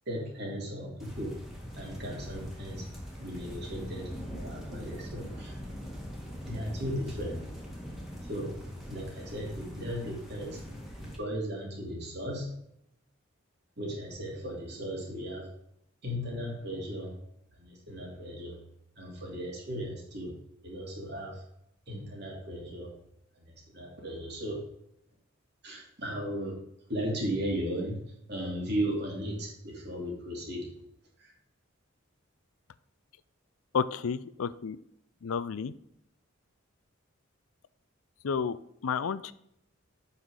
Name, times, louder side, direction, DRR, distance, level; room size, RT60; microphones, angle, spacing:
voice 1, 0.1-1.4 1.8-2.8 3.2-5.6 6.4-7.4 8.2-8.6 8.9-10.6 11.0-12.5 13.8-15.5 16.0-17.2 17.6-18.6 19.0-20.3 20.6-21.4 21.9-22.9 23.4-23.5 23.7-24.6 25.6-26.6 26.9-28.0 28.3-30.7 31.2-31.3, equal, 50° right, -1 dB, 2.9 m, -36 dB
sound 1, 1.0-11.2, equal, ahead, 1.8 m, -42 dB
voice 2, 33.7-34.8 35.2-35.7 38.2-38.6 38.8-39.3, left 6 dB, 80° left, 16 dB, 0.5 m, -31 dB
8.0 x 5.7 x 4.9 m, 0.76 s
head